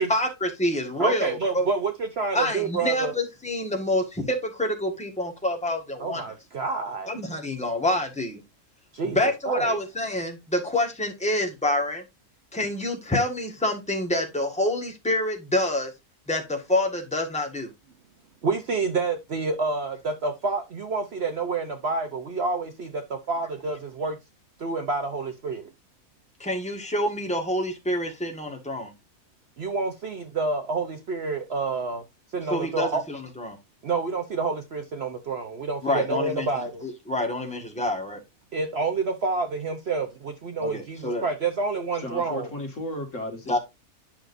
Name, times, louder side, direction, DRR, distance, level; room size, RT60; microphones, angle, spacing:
voice 1, 0.0-1.7 2.3-6.2 7.1-8.4 9.1-12.0 12.5-15.9 16.3-17.7 26.4-28.9 32.5-33.6 35.8-38.2 40.6-41.2 43.5-43.6, left 1 dB, 5° left, 1.4 m, -27 dB
voice 2, 1.0-3.1 6.0-7.1 8.9-9.8 18.4-24.2 24.6-25.7 29.6-32.0 32.3-33.0 33.8-36.8 38.5-42.5, right 4 dB, 50° right, 0.9 m, -28 dB
voice 3, 42.0-43.6, left 1 dB, 55° left, 2.2 m, -34 dB
9.0 x 6.3 x 2.6 m
omnidirectional pair, 1.6 m